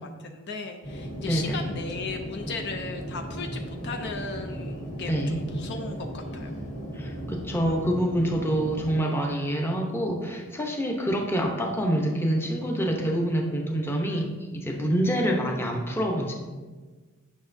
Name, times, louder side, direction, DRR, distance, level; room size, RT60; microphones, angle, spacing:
voice 1, 0.0-6.5, left 4 dB, 50° left, 4 dB, 0.5 m, -36 dB
sound 1, 0.8-9.0, equal, 35° left, 2.1 m, -36 dB
voice 2, 1.3-1.7 5.1-5.4 6.9-16.3, equal, 10° left, 0 dB, 0.8 m, -26 dB
9.4 x 5.9 x 2.6 m, 1.4 s
head